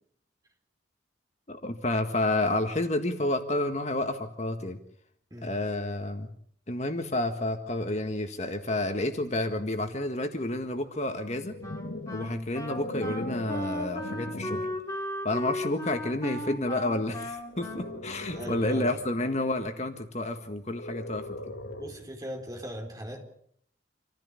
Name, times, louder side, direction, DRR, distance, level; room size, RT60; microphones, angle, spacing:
voice 1, 1.5-4.8 5.4-6.3 6.7-11.5 12.1-14.7 15.2-21.5, left 1 dB, 35° left, 6 dB, 1.7 m, -30 dB
sound 1, 11.1-14.8 15.4-15.7 17.5-19.0 20.7-22.1, left 1 dB, 75° left, 2.1 m, -40 dB
Wind instrument woodwind instrument, 11.6-19.0, left 1 dB, 20° left, 2.6 m, -37 dB
voice 2, 18.3-19.0 21.8-23.3, equal, 20° right, 2 dB, 4.4 m, -39 dB
27.0 x 15.0 x 8.4 m, 0.64 s
head